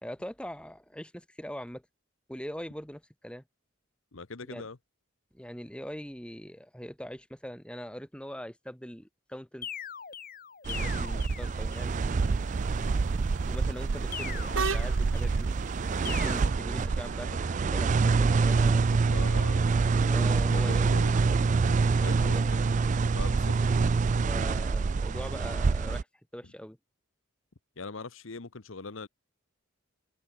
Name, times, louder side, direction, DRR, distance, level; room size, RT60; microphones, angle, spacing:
voice 1, 0.0-1.8 2.3-3.4 4.4-4.7 5.3-9.7 10.7-11.9 13.5-15.5 16.1-17.9 18.2-18.9 20.1-20.9 21.9-22.3 24.3-26.1 26.3-26.8, equal, 5° left, 4.0 m, -42 dB
voice 2, 4.1-4.8 18.9-19.6 19.9-20.2 20.4-22.6 23.1-23.5 26.4-26.5 27.8-29.1, left 3 dB, 70° left, 1.1 m, -42 dB
sound 1, 9.6-12.0 14.1-15.5 16.0-16.5, left 8 dB, 45° left, 1.5 m, -41 dB
sound 2, 10.6-26.0, right 4 dB, 35° right, 0.3 m, -26 dB
sound 3, 11.7-17.6, right 4 dB, 70° right, 1.9 m, -40 dB
head